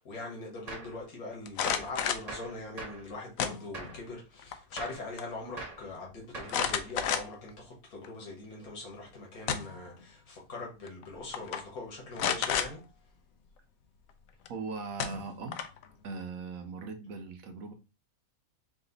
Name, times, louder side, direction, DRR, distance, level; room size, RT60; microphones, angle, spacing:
voice 1, 0.0-12.8, left 2 dB, 90° left, 2.0 m, -42 dB
Gunshot gunfire, 0.7-1.0 1.7-2.0 2.3-3.1 3.7-4.1 4.8-5.1 5.6-5.9 6.3-6.9, right 2 dB, 30° right, 1.0 m, -42 dB
sound 1, 1.5-2.3 3.4-4.0 4.4-4.9 5.2-5.3 6.5-7.5 8.0-8.1 9.1-9.9 10.9-11.0 11.3-11.6 12.2-12.7 14.4-14.5 15.0-15.8, left 8 dB, 75° left, 1.0 m, -31 dB
voice 2, 14.5-15.6 16.0-17.7, right 4 dB, 75° right, 1.2 m, -39 dB
4.8 x 2.6 x 3.9 m
omnidirectional pair, 1.5 m